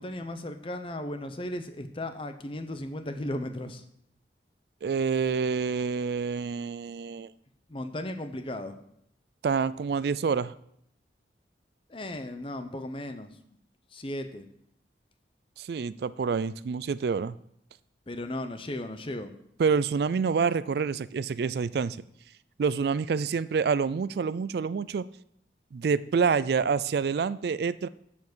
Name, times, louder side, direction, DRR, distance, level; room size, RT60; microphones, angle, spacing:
voice 1, 0.0-3.8 7.7-8.8 11.9-13.3 13.9-14.4 18.1-19.3, left 1 dB, 30° left, 8 dB, 0.7 m, -36 dB
voice 2, 4.8-7.3 9.4-10.5 15.6-17.3 19.6-22.0 22.6-25.1 25.7-27.9, right 5 dB, 65° right, 17 dB, 0.3 m, -27 dB
7.2 x 7.2 x 6.2 m, 0.71 s
head